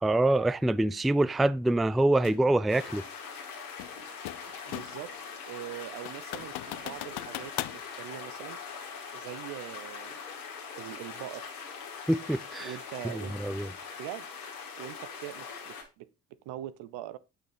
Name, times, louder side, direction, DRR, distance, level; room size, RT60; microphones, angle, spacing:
voice 1, 0.0-3.1 12.1-12.7 13.1-13.7, right 2 dB, ahead, 0.4 m, -25 dB
sound 1, 2.2-2.5 3.8-5.1 5.5-5.6 6.1-7.8, left 17 dB, 65° left, 0.7 m, -38 dB
sound 2, 2.7-15.8, left 6 dB, 85° left, 2.2 m, -42 dB
voice 2, 4.7-5.2 5.4-8.6 9.1-10.2 10.7-11.6 12.6-13.4 13.9-14.3 14.7-17.2, right 13 dB, 70° right, 0.8 m, -42 dB
9.0 x 6.4 x 5.1 m
hypercardioid pair, 40°, 42 cm